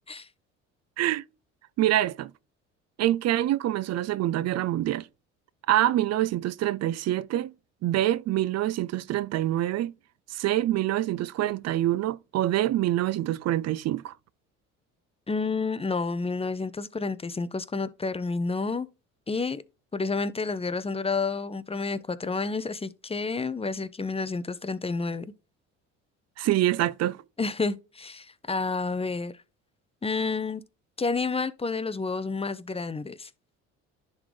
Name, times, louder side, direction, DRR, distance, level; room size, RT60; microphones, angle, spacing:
voice 1, 1.8-2.3 3.0-5.1 5.7-7.5 7.8-9.9 10.3-14.1 26.4-27.2, right 14 dB, 55° right, 0.5 m, -25 dB
voice 2, 15.3-18.9 19.3-19.6 19.9-25.3 27.4-29.3 30.0-30.6 31.0-33.3, left 4 dB, 20° left, 0.8 m, -30 dB
10.5 x 3.9 x 3.2 m
supercardioid pair, 80°, 30 cm